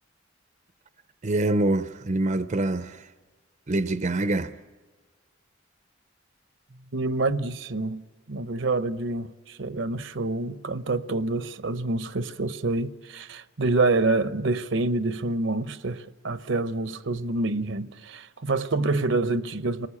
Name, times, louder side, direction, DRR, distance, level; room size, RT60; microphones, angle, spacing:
voice 1, 1.2-3.1 3.7-4.6, right 2 dB, 35° right, 0.7 m, -25 dB
voice 2, 6.9-19.9, right 3 dB, 65° right, 0.9 m, -27 dB
28.0 x 19.5 x 8.6 m
head